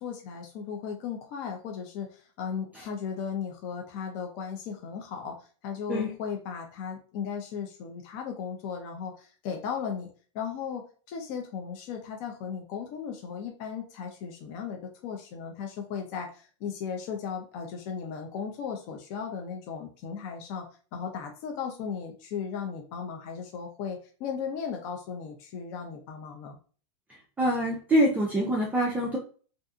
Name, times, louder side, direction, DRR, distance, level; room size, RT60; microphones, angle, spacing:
voice 1, 0.0-5.4 5.6-10.1 10.3-20.7 20.9-26.6, left 7 dB, 45° left, 2 dB, 0.5 m, -36 dB
voice 2, 27.4-29.2, right 1 dB, 10° right, -3 dB, 0.4 m, -25 dB
2.6 x 2.5 x 2.4 m, 0.40 s
supercardioid pair, 145°, 16 cm